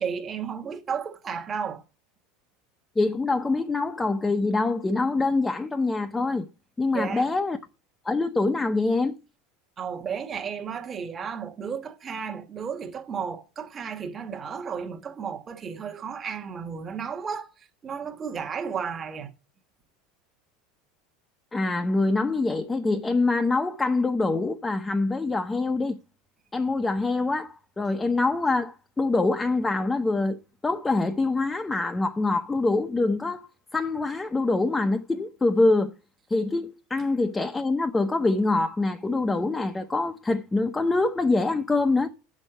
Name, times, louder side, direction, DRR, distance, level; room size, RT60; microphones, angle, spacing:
voice 1, 0.0-1.8 6.9-7.3 9.8-19.3, right 6 dB, 25° right, 1.3 m, -33 dB
voice 2, 3.0-6.5 6.8-7.6 8.0-9.1 21.5-26.0 26.5-33.4 33.7-35.9 36.3-42.1, left 3 dB, 10° left, 0.8 m, -25 dB
8.2 x 6.4 x 7.8 m
supercardioid pair, 145°, 0 cm